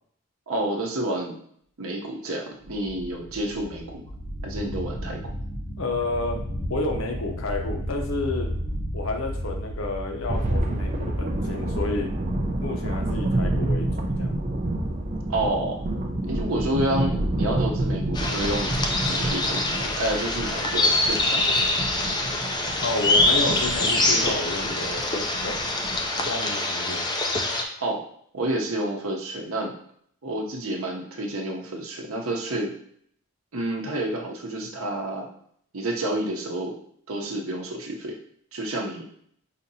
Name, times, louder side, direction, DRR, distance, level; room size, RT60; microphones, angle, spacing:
voice 1, 0.5-1.4 1.8-4.0 4.4-5.2 15.3-15.8 16.3-21.5 27.8-28.0 28.3-29.8 30.2-32.7 33.5-35.3 35.7-36.8 37.1-38.2 38.5-39.0, right 1 dB, 90° right, 1 dB, 0.8 m, -29 dB
sound 1, 2.6-20.5, equal, 45° left, 0.9 m, -36 dB
voice 2, 5.8-8.5 8.9-12.1 12.6-14.4 22.8-25.6 26.1-27.1, left 2 dB, 80° left, 3 dB, 0.7 m, -30 dB
sound 2, 10.3-26.1, right 1 dB, 35° right, 0.5 m, -29 dB
sound 3, 18.1-27.6, left 2 dB, 20° left, 0.4 m, -24 dB
5.1 x 2.8 x 2.7 m, 0.65 s
head